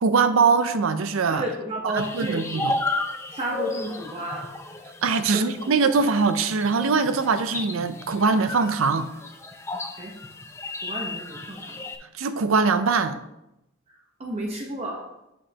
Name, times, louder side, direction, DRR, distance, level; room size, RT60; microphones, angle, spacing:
voice 1, 0.0-1.4 1.8-2.8 5.0-9.1 12.2-13.2, right 4 dB, 80° right, 10 dB, 0.5 m, -22 dB
voice 2, 1.3-2.6 3.3-4.5 5.2-5.7 10.0-10.2 10.8-11.8 14.2-15.1, right 1 dB, 30° right, -1 dB, 0.9 m, -32 dB
sound 1, 2.0-12.0, left 2 dB, 15° left, 0.4 m, -34 dB
8.6 x 5.2 x 2.9 m, 0.88 s
head